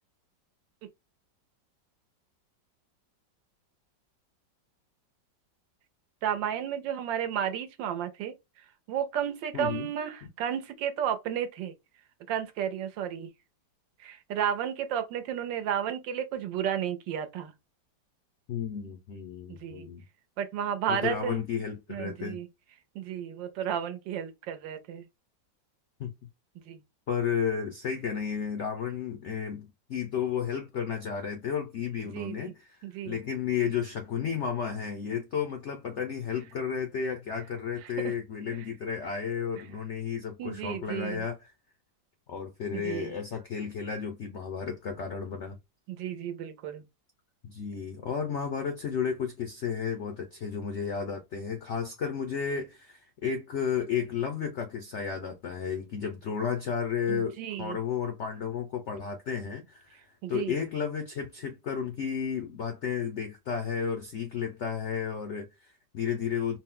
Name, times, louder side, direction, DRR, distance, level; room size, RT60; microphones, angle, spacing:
voice 1, 6.2-8.3 8.9-11.7 12.3-13.3 14.0-17.5 19.5-19.9 20.4-21.4 21.9-22.5 22.9-25.0 26.7-26.8 32.1-32.5 32.8-33.2 37.8-38.1 40.4-41.2 42.7-43.1 45.9-46.8 57.1-57.8 60.2-60.6, right 9 dB, 80° right, 1.4 m, -32 dB
voice 2, 9.5-9.9 18.5-20.0 20.9-22.4 26.0-26.1 27.1-32.8 33.0-41.5 42.3-45.6 47.4-60.0 60.3-66.6, left 7 dB, 75° left, 0.6 m, -33 dB
4.1 x 2.1 x 3.7 m
omnidirectional pair, 2.0 m